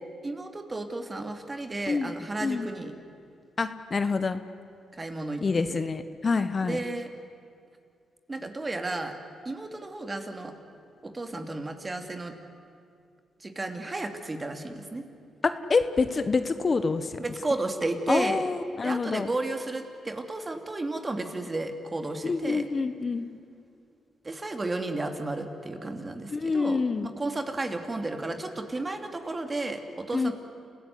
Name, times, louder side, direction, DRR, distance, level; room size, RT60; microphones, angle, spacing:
voice 1, 0.2-3.0 4.9-5.4 5.7-5.8 6.6-7.1 8.3-9.1 9.4-10.5 11.0-12.3 13.4-15.0 17.2-18.4 18.8-22.6 24.2-30.3, right 2 dB, 30° right, 6 dB, 2.9 m, -33 dB
voice 2, 3.6-4.4 5.4-6.8 15.4-17.1 18.1-19.3 22.2-23.3 26.3-27.1 30.1-30.3, left 4 dB, 40° left, 11 dB, 1.2 m, -26 dB
28.0 x 16.0 x 9.7 m, 2.4 s
supercardioid pair, 60°, 0 cm